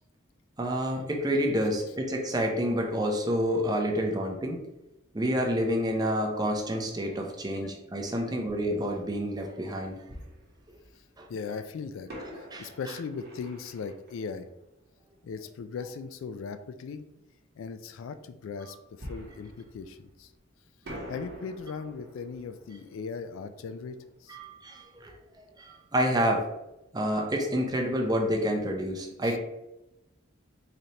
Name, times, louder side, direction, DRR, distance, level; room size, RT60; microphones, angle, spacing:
voice 1, 0.6-4.6 5.1-10.0 11.2-11.3 12.5-12.7 24.3-25.1 25.6-26.5 26.9-29.4, equal, 20° right, 1 dB, 0.5 m, -28 dB
Fireworks, 10.1-11.2 12.1-15.5 19.0-20.4 20.8-25.4 25.6-25.7 26.3-26.5, equal, 50° right, 0.9 m, -47 dB
voice 2, 11.3-12.1 12.4-14.5 15.2-17.0 17.6-20.3 21.1-24.4 29.2-29.4, left 5 dB, 70° left, 10 dB, 0.3 m, -38 dB
4.0 x 3.2 x 2.8 m, 0.92 s
head